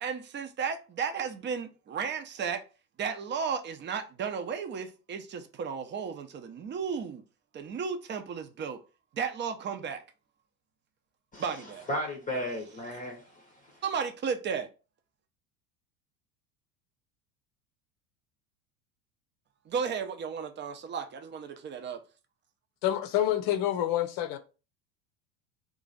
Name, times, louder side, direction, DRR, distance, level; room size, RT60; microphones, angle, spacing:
voice 1, 0.0-2.6 3.0-7.2 7.5-8.8 9.1-10.0 11.4-11.9 13.8-14.7 19.7-22.0, right 6 dB, 25° right, 0.6 m, -34 dB
voice 2, 11.3-13.8, left 1 dB, 20° left, 0.8 m, -36 dB
voice 3, 22.8-24.4, left 12 dB, 50° left, 0.7 m, -27 dB
3.1 x 2.4 x 3.9 m
hypercardioid pair, 85°, 44 cm